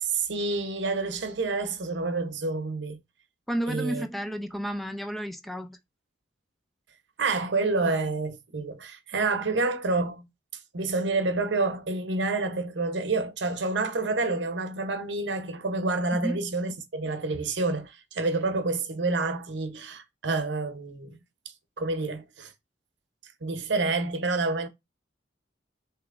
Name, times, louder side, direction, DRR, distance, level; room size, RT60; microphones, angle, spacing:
voice 1, 0.0-3.0 3.7-4.0 7.2-10.3 10.7-21.2 21.8-22.5 23.4-24.7, right 3 dB, 80° right, 0.8 m, -28 dB
voice 2, 3.5-5.8 16.1-16.4, equal, ahead, 0.4 m, -32 dB
6.7 x 3.0 x 2.4 m
head